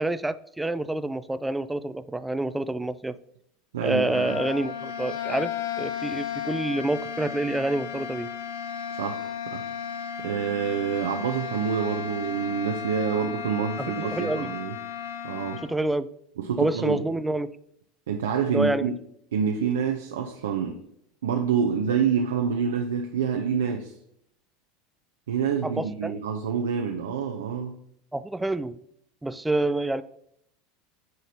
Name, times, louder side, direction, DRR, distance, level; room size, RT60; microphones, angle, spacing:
voice 1, 0.0-3.2 3.8-5.5 5.8-8.3 13.8-14.5 15.6-16.1 16.6-17.5 18.5-18.9 25.6-26.1 28.1-28.8 29.2-30.0, right 2 dB, 10° right, 14 dB, 0.3 m, -27 dB
voice 2, 3.7-4.4 9.0-9.6 10.2-14.8 15.2-15.6 16.4-17.0 18.1-18.9 19.3-20.8 21.2-23.9 25.3-27.8, right 7 dB, 75° right, 3 dB, 0.5 m, -27 dB
sound 1, 3.9-15.7, left 8 dB, 65° left, 0.7 m, -34 dB
9.3 x 3.9 x 2.8 m, 0.73 s
hypercardioid pair, 80°, 0 cm